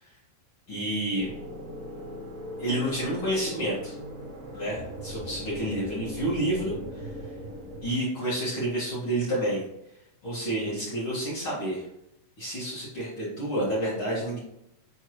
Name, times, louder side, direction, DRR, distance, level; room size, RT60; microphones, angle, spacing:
voice 1, 0.7-1.3 2.6-3.9 4.5-7.1 7.8-9.6 10.2-11.8 12.4-14.4, right 1 dB, 45° left, -8 dB, 1.6 m, -29 dB
sound 1, 1.1-7.9, equal, 65° right, 1.6 m, -39 dB
7.2 x 4.5 x 3.1 m, 0.80 s
omnidirectional pair, 5.3 m